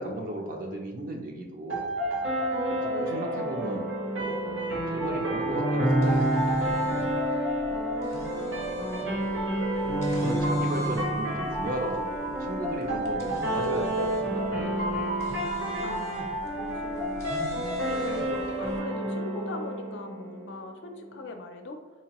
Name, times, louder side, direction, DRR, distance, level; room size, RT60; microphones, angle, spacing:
voice 1, 0.0-1.9 2.8-4.4 4.9-7.1 9.7-15.0, right 1 dB, 45° right, 1 dB, 0.4 m, -35 dB
sound 1, 1.7-20.6, right 1 dB, 85° right, 1.3 m, -29 dB
voice 2, 2.8-3.5 7.9-8.6 15.8-21.8, left 2 dB, 60° left, 5 dB, 0.5 m, -41 dB
sound 2, 5.8-18.8, equal, 15° left, 0.6 m, -43 dB
3.8 x 2.8 x 2.9 m, 1.3 s
head